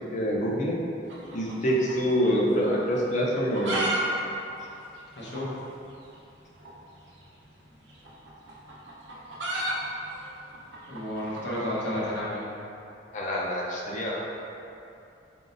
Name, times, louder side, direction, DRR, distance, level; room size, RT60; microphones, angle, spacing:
voice 1, 0.1-0.8 1.3-3.8 13.1-14.2, equal, 45° left, -3 dB, 0.5 m, -26 dB
sound 1, 1.0-2.4 2.6-2.7 3.3-4.0 4.3-4.4 4.6-4.7 5.3-5.4 6.6-6.8 7.9-12.1, right 1 dB, 90° right, 0.7 m, -32 dB
voice 2, 5.1-5.6 10.9-12.4, left 1 dB, 75° left, -7 dB, 0.9 m, -31 dB
3.9 x 3.7 x 2.5 m, 2.7 s
head